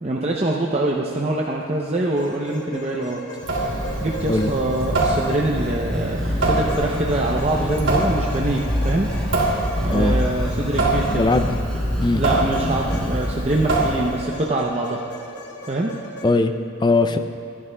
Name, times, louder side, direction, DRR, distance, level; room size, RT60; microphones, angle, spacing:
voice 1, 0.0-3.2 3.5-9.1 9.8-11.2 12.1-15.1 15.7-15.9, right 2 dB, 30° right, -2 dB, 0.6 m, -24 dB
sound 1, 2.1-5.9 6.7-11.9 12.5-16.2, equal, 55° left, 1.0 m, -37 dB
Water tap faucet / Sink (filling or washing) / Drip, 3.4-14.3, right 2 dB, 65° right, 2.6 m, -25 dB
sound 2, 5.6-13.2, equal, 5° left, 2.5 m, -27 dB
voice 2, 11.1-11.6 12.0-12.2 16.2-16.5 16.8-17.2, left 2 dB, 20° left, 9 dB, 0.4 m, -19 dB
24.5 x 11.0 x 2.2 m, 2.7 s
head